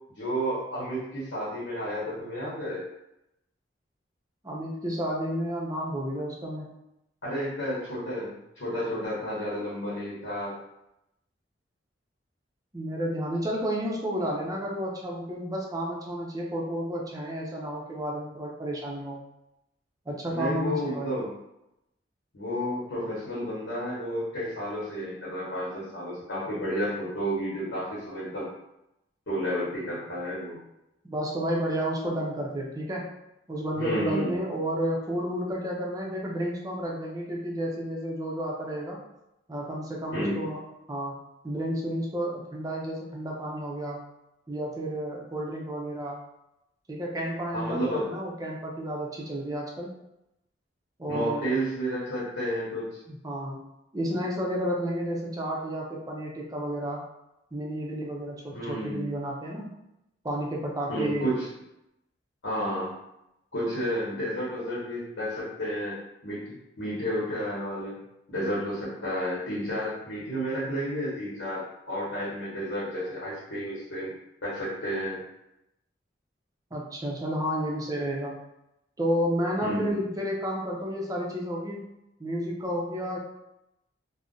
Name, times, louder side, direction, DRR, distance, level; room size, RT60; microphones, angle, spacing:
voice 1, 0.2-2.8 7.2-10.5 20.3-21.3 22.3-28.5 29.3-30.6 33.7-34.4 40.1-40.5 47.5-48.1 51.1-52.9 58.5-59.1 60.9-61.5 62.4-63.0 63.5-68.0 68.3-74.1 74.4-75.2 79.6-80.0, equal, 70° left, -7 dB, 1.0 m, -31 dB
voice 2, 4.4-6.7 12.7-19.2 20.1-21.1 31.0-33.1 33.5-39.0 39.5-40.6 40.9-41.2 41.4-44.0 44.5-46.2 46.9-49.9 51.0-51.5 53.1-53.7 53.9-57.0 57.5-59.7 60.2-61.3 76.7-78.4 79.0-81.8 82.2-83.2, equal, 20° right, -2 dB, 0.5 m, -31 dB
2.5 x 2.1 x 3.7 m, 0.87 s
head